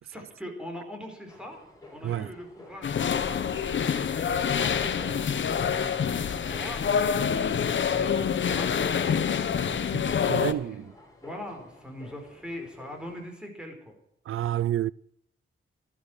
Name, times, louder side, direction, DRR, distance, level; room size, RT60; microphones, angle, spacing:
voice 1, 0.0-1.6 1.9-5.3 5.7-7.5 7.9-9.2 10.0-10.9 11.2-13.9, equal, 5° right, 4.8 m, -42 dB
sound 1, 1.2-13.3, left 2 dB, 15° left, 6.2 m, -51 dB
sound 2, 2.8-10.5, left 7 dB, 65° left, 1.1 m, -26 dB
voice 2, 9.9-10.9 14.3-14.9, right 12 dB, 80° right, 0.5 m, -29 dB
13.0 x 12.0 x 6.3 m
wide cardioid pair, 105°, 21 cm